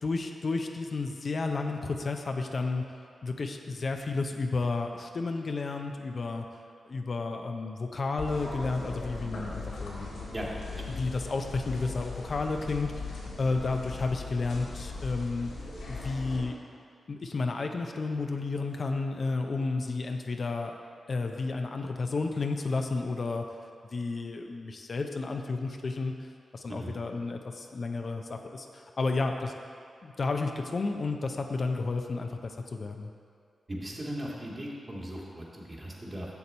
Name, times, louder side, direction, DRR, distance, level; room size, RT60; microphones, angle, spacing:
voice 1, 0.0-2.8 3.2-6.5 6.8-10.3 10.9-15.5 15.9-16.5 17.1-20.7 21.1-23.4 23.9-29.5 30.0-33.1, left 3 dB, 55° left, 4 dB, 0.6 m, -32 dB
sound 1, 8.2-16.4, left 3 dB, 90° left, 1.9 m, -39 dB
voice 2, 10.3-11.0 26.7-27.0 33.7-36.3, equal, 35° right, -4 dB, 1.8 m, -38 dB
7.0 x 6.6 x 4.2 m, 2.3 s
supercardioid pair, 45°, 0 cm